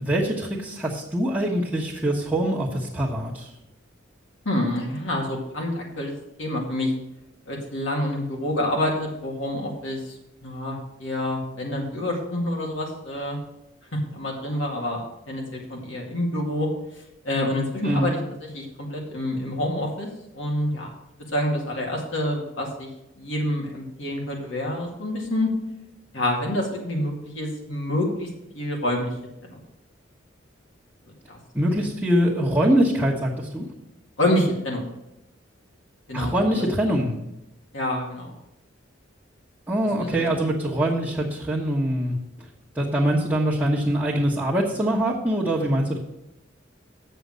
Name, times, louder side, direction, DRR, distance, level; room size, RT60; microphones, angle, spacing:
voice 1, 0.0-3.5 17.8-18.1 31.5-33.6 36.1-37.1 39.7-42.2 42.7-46.0, right 1 dB, 10° right, -7 dB, 1.2 m, -23 dB
voice 2, 4.5-6.1 6.4-6.9 7.5-13.4 13.9-16.7 17.2-20.1 20.3-20.9 21.3-22.9 23.2-25.5 26.1-28.3 28.5-29.1 29.5-29.6 31.3-31.4 34.2-34.8 36.1-36.6 37.7-38.3 40.0-40.1, left 1 dB, 75° left, -1 dB, 2.2 m, -27 dB
7.7 x 6.8 x 6.3 m, 0.88 s
head